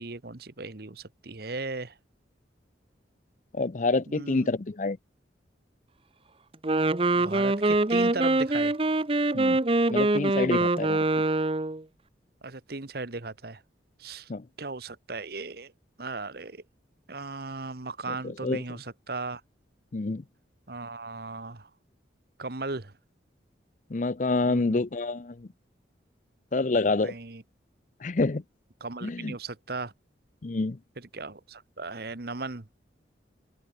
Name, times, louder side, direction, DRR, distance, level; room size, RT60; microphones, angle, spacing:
voice 1, 0.0-1.9 4.1-4.5 7.1-8.7 12.4-13.6 14.0-14.3 14.6-15.7 16.0-16.6 17.1-19.4 20.7-21.7 22.4-22.9 24.4-24.8 27.0-27.4 28.8-29.9 31.1-32.7, right 3 dB, 55° right, 1.3 m, -37 dB
voice 2, 3.5-5.0 9.3-9.6 9.9-11.0 14.3-14.5 18.1-18.6 19.9-20.2 23.9-25.5 26.5-27.1 28.0-28.4 29.0-29.4 30.4-30.8, left 3 dB, 40° left, 0.6 m, -27 dB
Wind instrument woodwind instrument, 6.5-11.8, right 2 dB, 30° right, 0.8 m, -24 dB
head